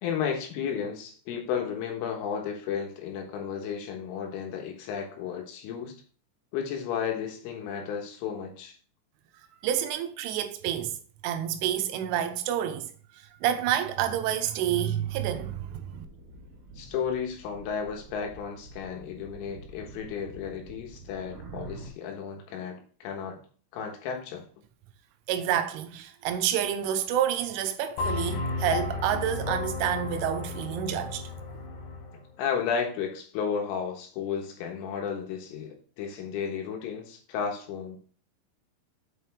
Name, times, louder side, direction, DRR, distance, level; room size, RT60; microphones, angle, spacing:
voice 1, 0.0-6.0 6.5-8.7 16.8-23.4 23.7-24.4 32.4-38.0, left 7 dB, 85° left, 3.8 m, -33 dB
voice 2, 9.6-11.0 11.2-12.9 13.4-16.0 25.3-31.2, right 10 dB, 90° right, 3.2 m, -28 dB
sound 1, 15.7-21.9, right 3 dB, 50° right, 2.9 m, -47 dB
sound 2, 28.0-32.2, left 4 dB, 65° left, 3.0 m, -33 dB
7.6 x 5.8 x 3.4 m
omnidirectional pair, 5.6 m